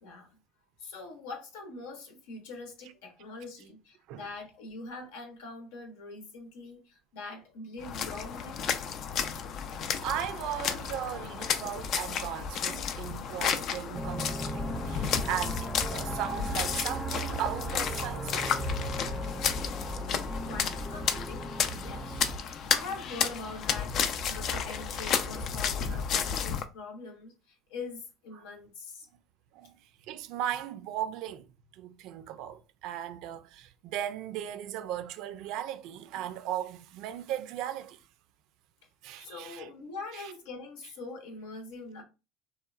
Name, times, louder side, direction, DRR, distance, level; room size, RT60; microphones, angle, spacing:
voice 1, 0.0-0.4 0.8-8.6 20.5-29.1 39.2-42.0, left 3 dB, 75° left, 0.7 m, -43 dB
sound 1, 7.8-26.6, left 7 dB, 55° left, 0.4 m, -32 dB
voice 2, 9.7-18.8 28.3-28.4 29.5-31.5 31.7-38.1 39.0-39.7 40.1-40.3, right 11 dB, 65° right, 0.4 m, -37 dB
sound 2, 13.9-22.4, right 2 dB, 5° right, 0.5 m, -37 dB
2.9 x 2.2 x 2.4 m
hypercardioid pair, 75°, 0 cm